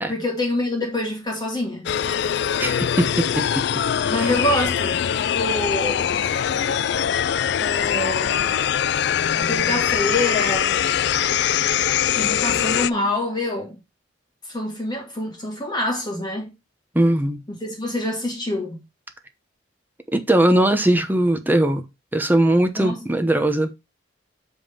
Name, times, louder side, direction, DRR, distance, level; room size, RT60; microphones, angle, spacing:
voice 1, 0.1-1.9 4.1-6.2 7.6-8.7 9.4-10.8 12.2-13.8 14.5-16.5 17.6-18.8 22.8-23.0, left 1 dB, 20° left, 1.9 m, -26 dB
sound 1, 1.9-12.9, left 9 dB, 60° left, 0.3 m, -22 dB
voice 2, 2.6-3.5 4.0-4.3 16.9-17.4 20.1-21.9 22.1-23.8, right 1 dB, 10° right, 0.7 m, -20 dB
7.6 x 3.6 x 5.5 m
head